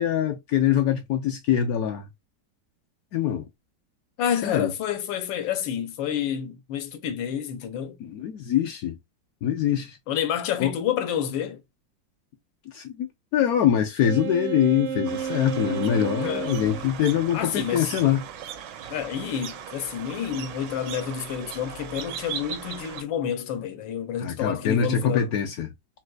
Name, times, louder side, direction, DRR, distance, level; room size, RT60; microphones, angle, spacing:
voice 1, 0.0-2.1 3.1-3.4 4.4-4.7 8.0-9.0 9.4-10.0 10.6-10.7 12.7-13.1 13.3-18.2 24.2-25.7, left 9 dB, 70° left, 0.9 m, -24 dB
voice 2, 4.2-8.0 10.1-11.6 16.2-16.5 17.3-17.9 18.9-25.3, left 9 dB, 85° left, 1.4 m, -29 dB
Wind instrument woodwind instrument, 14.0-16.9, right 8 dB, 65° right, 0.6 m, -31 dB
sound 1, 15.0-23.0, right 8 dB, 80° right, 1.3 m, -38 dB
4.0 x 2.3 x 2.3 m
omnidirectional pair, 2.0 m